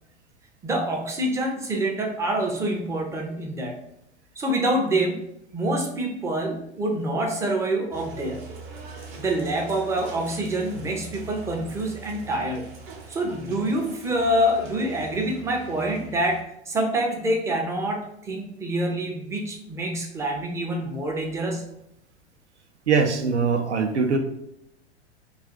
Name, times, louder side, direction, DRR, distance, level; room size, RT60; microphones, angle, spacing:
voice 1, 0.6-3.7 4.4-5.2 5.5-8.4 9.2-12.6 13.1-21.7, right 1 dB, 10° right, 0 dB, 0.4 m, -26 dB
sound 1, 7.9-16.4, right 4 dB, 45° right, 0.8 m, -42 dB
voice 2, 22.9-24.2, right 5 dB, 85° right, 5 dB, 0.6 m, -22 dB
2.4 x 2.4 x 3.8 m, 0.77 s
figure-of-eight pair, 95°, 34 cm